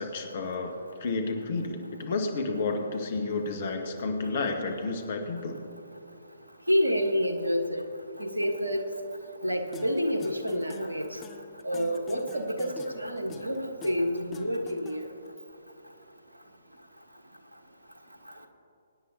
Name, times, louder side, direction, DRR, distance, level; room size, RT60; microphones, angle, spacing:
voice 1, 0.0-5.6, left 3 dB, 45° left, 4 dB, 1.7 m, -31 dB
voice 2, 6.7-7.8 8.2-8.9 9.4-11.2 11.6-15.0, equal, 80° right, 5 dB, 1.4 m, -28 dB
sound 1, 9.7-15.3, left 5 dB, 15° left, 0.7 m, -47 dB
24.0 x 9.8 x 2.9 m, 2.6 s
figure-of-eight pair, 130°, 0 cm